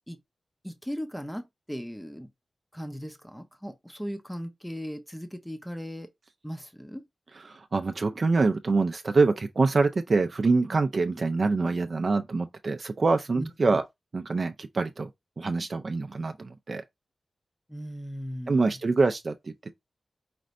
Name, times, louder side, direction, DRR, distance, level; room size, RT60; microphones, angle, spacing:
voice 1, 0.6-2.3 2.7-6.1 6.4-7.0 13.4-13.8 17.7-18.7, equal, 5° left, 0.6 m, -37 dB
voice 2, 7.5-13.8 14.1-15.1 15.4-16.8 18.5-19.3, right 3 dB, 45° right, 0.4 m, -25 dB
5.1 x 2.6 x 3.1 m
wide cardioid pair, 135°, 0 cm